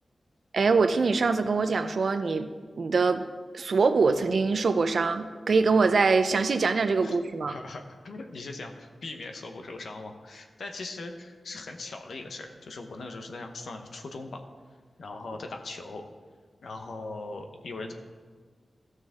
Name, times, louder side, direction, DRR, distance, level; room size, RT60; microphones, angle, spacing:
voice 1, 0.5-2.5 2.8-3.3 3.5-7.6, right 4 dB, 70° right, 9 dB, 0.6 m, -23 dB
voice 2, 7.4-14.4 15.0-16.0 16.6-17.9, left 3 dB, 85° left, 4 dB, 1.0 m, -40 dB
15.0 x 6.3 x 3.6 m, 1.5 s
wide cardioid pair, 115°, 0 cm